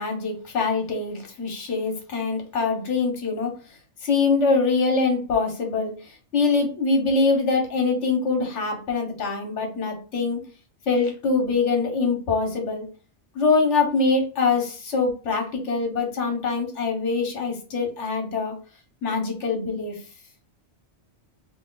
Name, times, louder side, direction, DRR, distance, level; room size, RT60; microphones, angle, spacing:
voice 1, 0.0-3.5 4.0-5.9 6.3-10.4 10.9-12.8 13.3-18.5 19.0-20.0, left 4 dB, 80° left, 3 dB, 1.4 m, -24 dB
3.1 x 2.7 x 3.8 m, 0.36 s
omnidirectional pair, 1.2 m